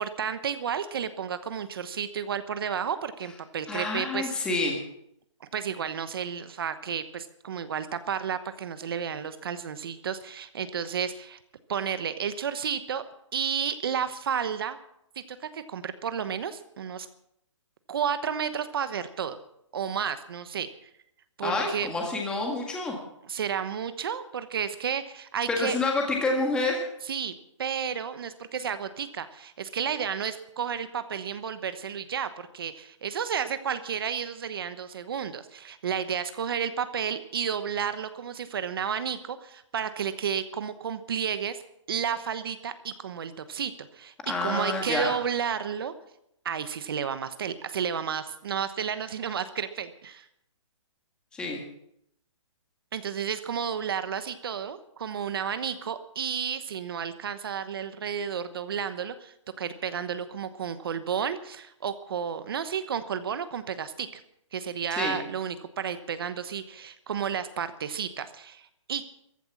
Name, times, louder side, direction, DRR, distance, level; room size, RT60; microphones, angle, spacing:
voice 1, 0.0-4.5 5.4-11.4 11.7-13.0 13.3-14.8 15.3-17.1 17.9-19.4 19.7-20.7 21.4-21.9 23.2-25.8 27.0-27.3 27.6-41.6 41.9-45.9 46.4-50.2 52.9-64.2 64.5-69.0, right 7 dB, 50° right, 12 dB, 1.1 m, -32 dB
voice 2, 3.7-4.8 21.4-23.0 25.5-26.8 44.2-45.1 51.3-51.6 64.9-65.2, left 3 dB, 5° left, 0 dB, 1.8 m, -28 dB
15.0 x 11.5 x 7.3 m, 0.76 s
hypercardioid pair, 170°, 16 cm